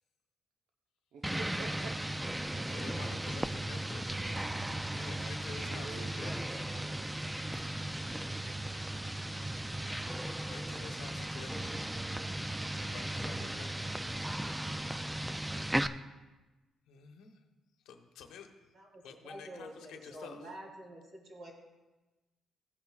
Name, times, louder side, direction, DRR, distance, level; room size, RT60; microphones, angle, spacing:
voice 1, 1.1-2.0 5.2-5.3 5.6-7.2, right 4 dB, 80° right, 2 dB, 0.8 m, -49 dB
sound 1, 1.2-15.9, right 1 dB, 10° right, 0.4 m, -36 dB
voice 2, 2.6-4.0 4.9-6.6 9.8-11.8 12.8-13.9 16.9-17.4 17.8-18.7 19.0-20.5, left 6 dB, 85° left, 5 dB, 1.0 m, -50 dB
voice 3, 18.7-21.5, right 1 dB, 65° right, -3 dB, 3.6 m, -48 dB
16.0 x 8.5 x 2.4 m, 1.1 s
cardioid pair, 90°, 0 cm